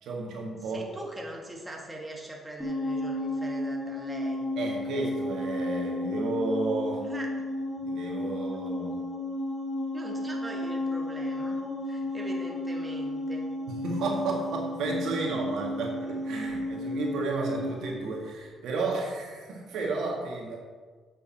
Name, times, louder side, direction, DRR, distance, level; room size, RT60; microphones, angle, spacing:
voice 1, 0.0-0.8 4.6-7.0 7.8-8.9 13.7-20.6, right 3 dB, 80° right, -1 dB, 1.9 m, -32 dB
voice 2, 0.6-4.4 7.0-7.3 9.9-11.6 11.8-13.5, right 1 dB, 15° right, -1 dB, 1.6 m, -41 dB
sound 1, 2.6-18.0, left 1 dB, 15° left, 2.5 m, -33 dB
8.8 x 6.8 x 4.4 m, 1.5 s
cardioid pair, 90°, 0 cm